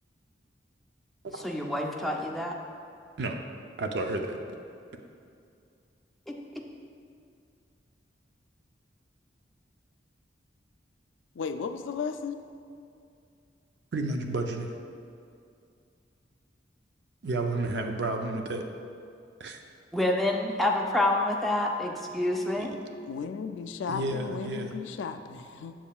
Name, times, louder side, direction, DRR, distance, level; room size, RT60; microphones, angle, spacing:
voice 1, 1.3-2.6 6.3-6.4 19.9-22.8, left 1 dB, ahead, 0 dB, 0.4 m, -27 dB
voice 2, 3.8-4.4 13.9-14.7 17.2-18.6 19.4-19.6 22.6-22.7 23.9-24.7, right 2 dB, 60° right, 4 dB, 0.5 m, -31 dB
voice 3, 11.4-12.4 23.0-25.7, left 5 dB, 85° left, 8 dB, 0.3 m, -35 dB
7.3 x 7.0 x 2.3 m, 2.4 s
head